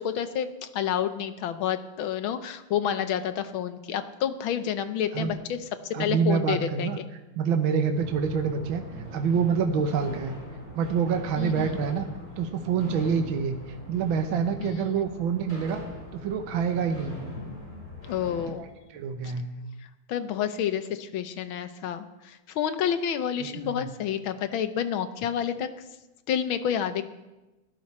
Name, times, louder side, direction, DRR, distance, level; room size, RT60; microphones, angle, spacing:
voice 1, 0.0-6.9 11.4-11.7 14.6-14.8 18.1-18.6 19.2-19.3 20.1-25.7 26.3-27.0, left 9 dB, 70° left, 10 dB, 1.6 m, -29 dB
voice 2, 5.9-8.8 9.1-10.4 10.7-12.1 12.4-15.8 16.1-17.2 18.6-19.4 23.6-23.9, right 6 dB, 70° right, 5 dB, 1.7 m, -27 dB
sound 1, 7.9-18.5, equal, 20° left, 6.2 m, -40 dB
16.5 x 13.0 x 4.3 m, 1.1 s
omnidirectional pair, 2.4 m